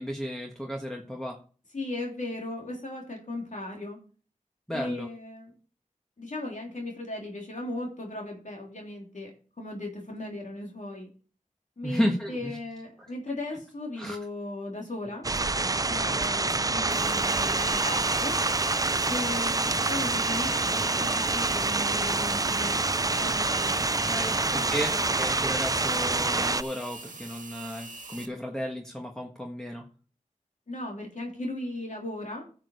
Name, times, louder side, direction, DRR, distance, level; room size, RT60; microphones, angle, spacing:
voice 1, 0.0-1.4 4.7-5.1 11.8-12.6 13.0-13.1 14.0-14.2 16.0-16.2 23.8-29.8, equal, 5° left, 0 dB, 1.5 m, -33 dB
voice 2, 1.7-4.0 4.7-5.5 6.2-9.3 9.6-11.1 11.8-15.3 15.8-18.4 19.1-22.8 23.1-25.4 30.7-32.5, left 2 dB, 65° left, 0 dB, 3.3 m, -37 dB
sound 1, 15.2-26.6, right 3 dB, 25° right, 0.4 m, -26 dB
sound 2, 16.9-28.3, right 3 dB, 70° right, 1.6 m, -43 dB
11.0 x 6.7 x 5.4 m, 0.39 s
wide cardioid pair, 55°, 14 cm